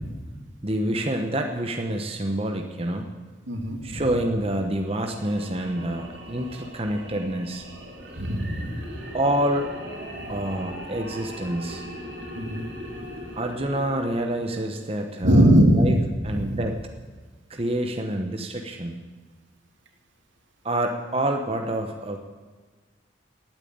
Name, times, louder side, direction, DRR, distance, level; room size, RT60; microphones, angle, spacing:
voice 1, 0.6-3.1 3.8-7.6 9.1-9.7 10.3-11.8 13.4-16.0 16.2-16.8 17.5-19.0 20.6-22.2, right 1 dB, 30° right, 4 dB, 1.0 m, -27 dB
voice 2, 3.5-4.1 8.2-8.8 10.2-10.3 12.3-12.6 15.2-15.9 16.3-16.6, equal, 80° right, 3 dB, 2.5 m, -20 dB
sound 1, 4.7-15.0, right 1 dB, 65° right, 3.7 m, -41 dB
sound 2, 8.5-15.0, equal, 45° left, 6.8 m, -44 dB
18.0 x 9.0 x 8.8 m, 1.4 s
head